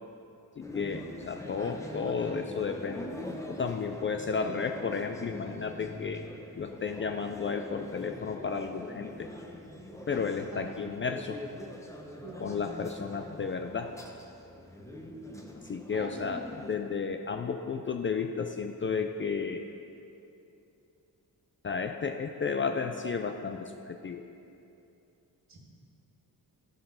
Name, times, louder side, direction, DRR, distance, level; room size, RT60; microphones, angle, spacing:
voice 1, 0.6-3.1 3.5-6.2 6.5-9.3 10.1-11.4 12.4-13.9 15.7-19.7 21.6-24.2, left 5 dB, 35° left, 5 dB, 0.4 m, -33 dB
sound 1, 0.6-16.7, left 1 dB, 10° left, 0.8 m, -43 dB
voice 2, 12.2-12.8 15.1-15.3 15.9-16.4 25.5-25.6, right 2 dB, 45° right, -1 dB, 1.8 m, -43 dB
12.0 x 5.4 x 5.7 m, 2.7 s
cardioid pair, 115°, 38 cm